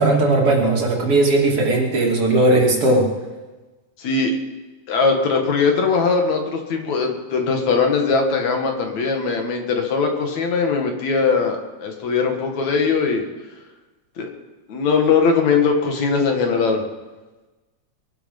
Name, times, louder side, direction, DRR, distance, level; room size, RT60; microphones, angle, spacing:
voice 1, 0.0-3.1, right 2 dB, 50° right, -2 dB, 3.5 m, -17 dB
voice 2, 4.0-4.3 4.9-13.2 14.2-14.3 14.7-16.8, left 5 dB, 70° left, 3 dB, 3.1 m, -20 dB
22.5 x 11.5 x 5.4 m, 1.2 s
omnidirectional pair, 3.4 m